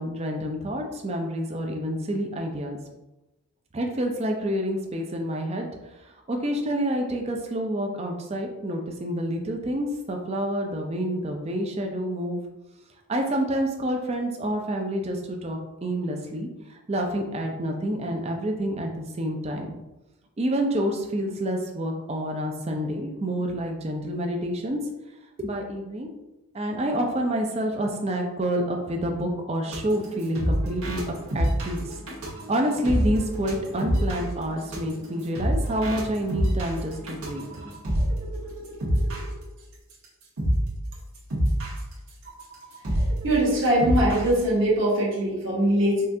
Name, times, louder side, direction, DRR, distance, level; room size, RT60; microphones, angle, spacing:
voice 1, 0.0-2.8 3.7-5.7 6.0-12.4 13.1-19.7 20.4-24.8 25.4-26.1 26.5-32.0 32.5-37.6, equal, 30° right, 2 dB, 0.4 m, -28 dB
sound 1, 29.7-39.3 39.9-40.0 40.4-40.7 41.1-44.3, equal, 75° right, 1.3 m, -26 dB
voice 2, 43.2-46.0, right 1 dB, 60° right, -5 dB, 1.4 m, -22 dB
5.4 x 2.4 x 2.7 m, 0.98 s
head